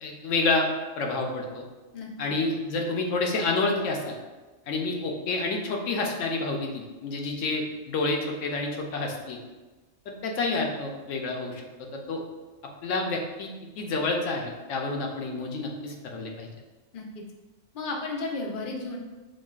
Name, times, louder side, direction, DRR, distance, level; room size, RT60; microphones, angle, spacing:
voice 1, 0.0-0.7 1.0-1.6 2.2-4.2 4.7-9.4 10.1-12.2 12.8-13.5 13.8-16.5, left 3 dB, 75° left, 1 dB, 0.9 m, -29 dB
voice 2, 16.9-17.2 17.7-19.0, left 3 dB, 55° left, 1 dB, 0.6 m, -33 dB
6.1 x 2.2 x 2.4 m, 1.2 s
omnidirectional pair, 1.4 m